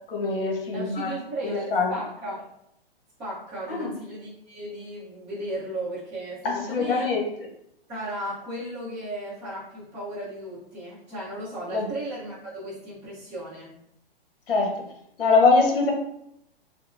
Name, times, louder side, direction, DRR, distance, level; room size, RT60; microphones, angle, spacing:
voice 1, 0.1-1.1 1.4-2.0 3.7-3.9 6.4-7.3 11.7-11.9 14.5-14.7 15.2-15.9, left 4 dB, 65° left, 0 dB, 1.0 m, -23 dB
voice 2, 0.7-2.4 3.2-7.0 7.9-13.7, right 1 dB, 5° right, -14 dB, 0.6 m, -35 dB
3.6 x 2.0 x 2.5 m, 0.77 s
hypercardioid pair, 160°, 30 cm